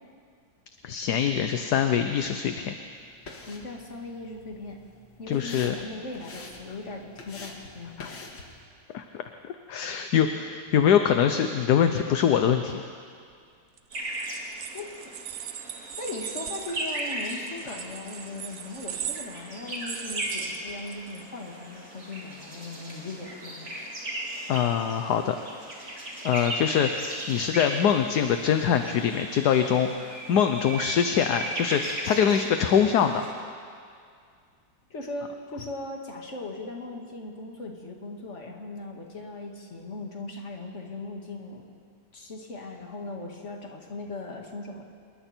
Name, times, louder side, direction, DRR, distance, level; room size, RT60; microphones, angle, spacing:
voice 1, 0.8-2.7 5.3-5.7 8.0-8.1 8.9-9.0 9.7-12.8 17.7-17.8 24.5-25.4 26.2-33.2, left 8 dB, 65° left, 7 dB, 1.3 m, -24 dB
sound 1, 2.6-8.6, left 2 dB, 90° left, 2.7 m, -46 dB
voice 2, 3.4-4.8 5.2-8.1 14.7-15.1 16.0-23.9 34.9-41.6 42.1-44.8, left 2 dB, 40° left, 1 dB, 2.5 m, -38 dB
sound 2, 13.8-21.2, right 9 dB, 60° right, 0.7 m, -39 dB
sound 3, 13.9-33.3, right 1 dB, 45° right, 4.1 m, -37 dB
26.5 x 22.0 x 4.5 m, 2.2 s
omnidirectional pair, 1.9 m